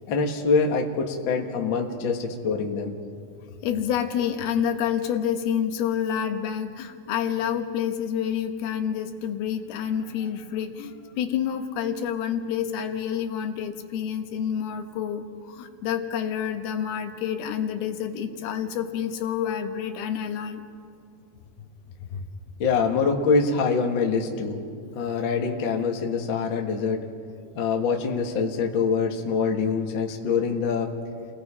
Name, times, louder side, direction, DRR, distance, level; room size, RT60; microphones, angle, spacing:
voice 1, 0.1-3.0 22.6-24.6 24.9-27.0 27.5-30.9, left 5 dB, 50° left, 2 dB, 1.5 m, -24 dB
voice 2, 3.6-20.6 22.1-22.3, left 8 dB, 85° left, 6 dB, 3.1 m, -28 dB
29.0 x 19.0 x 4.9 m, 2.3 s
omnidirectional pair, 4.3 m